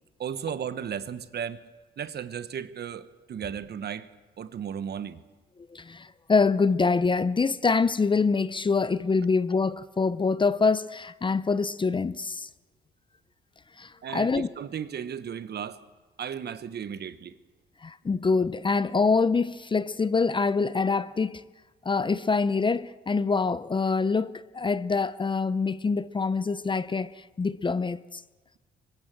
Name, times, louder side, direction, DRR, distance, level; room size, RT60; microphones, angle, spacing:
voice 1, 0.2-1.6 2.0-4.1 4.4-5.2 14.0-15.8 16.2-17.4, right 8 dB, 55° right, 1.2 m, -35 dB
voice 2, 5.7-12.5 13.8-14.5 17.8-21.4 21.8-28.2, left 4 dB, 25° left, 0.6 m, -25 dB
24.0 x 20.5 x 7.6 m
cardioid pair, 90°, 20 cm